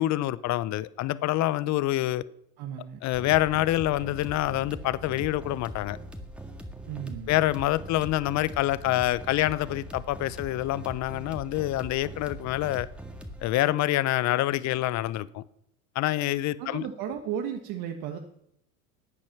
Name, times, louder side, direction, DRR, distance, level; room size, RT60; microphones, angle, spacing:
voice 1, 0.0-2.2 3.0-6.0 7.3-12.9 13.4-15.4 16.0-16.8, left 15 dB, 35° left, 0.7 m, -26 dB
voice 2, 2.6-3.0 6.9-7.4 16.6-18.2, right 8 dB, 50° right, 1.5 m, -34 dB
sound 1, 3.1-13.5, right 1 dB, ahead, 1.8 m, -41 dB
14.5 x 8.9 x 5.9 m
hypercardioid pair, 100°, 46 cm